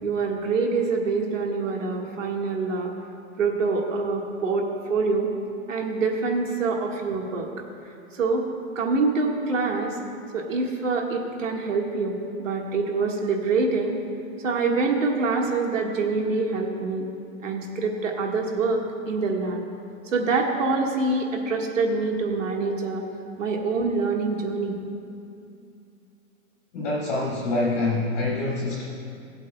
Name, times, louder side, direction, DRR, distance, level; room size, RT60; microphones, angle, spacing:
voice 1, 0.0-2.9 3.4-5.3 5.7-7.5 8.1-8.5 8.8-10.0 10.3-14.0 14.4-17.1 17.4-19.6 20.1-23.0 23.4-24.8, right 4 dB, 60° right, 1 dB, 1.8 m, -25 dB
voice 2, 26.7-28.8, left 2 dB, 5° left, -5 dB, 0.5 m, -25 dB
18.0 x 8.1 x 2.3 m, 2.6 s
hypercardioid pair, 160°, 42 cm